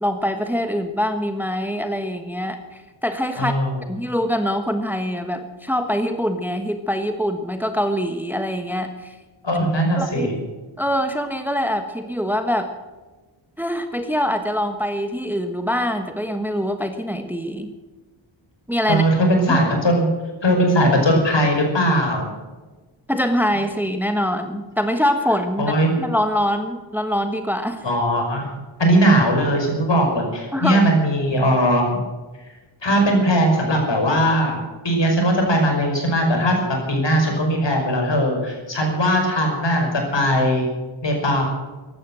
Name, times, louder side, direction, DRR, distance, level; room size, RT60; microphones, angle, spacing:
voice 1, 0.0-3.5 3.9-9.2 10.0-10.5 10.8-12.7 13.6-17.7 18.7-19.0 19.5-19.6 23.1-25.7 26.0-27.8 30.5-30.8, equal, 5° right, 7 dB, 1.2 m, -24 dB
voice 2, 3.4-3.8 9.4-10.3 18.9-20.1 20.4-22.3 25.6-25.9 27.8-28.5 28.8-32.0 32.8-34.6 34.8-40.7 41.0-41.4, equal, 65° left, 2 dB, 5.5 m, -19 dB
15.0 x 12.0 x 7.6 m, 1.2 s
wide cardioid pair, 80°, 47 cm